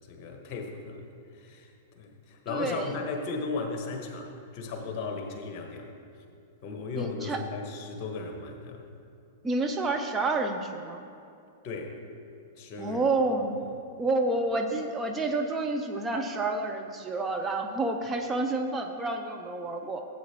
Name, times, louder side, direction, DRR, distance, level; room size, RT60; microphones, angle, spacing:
voice 1, 0.1-1.7 2.0-5.9 6.6-8.9 11.6-12.0 12.6-13.0, left 3 dB, 40° left, 3 dB, 1.5 m, -36 dB
voice 2, 2.5-3.0 7.0-7.4 9.4-11.0 12.8-13.6 14.0-20.0, right 2 dB, 15° right, 3 dB, 0.6 m, -29 dB
16.0 x 8.5 x 3.1 m, 2.5 s
figure-of-eight pair, 100°, 0 cm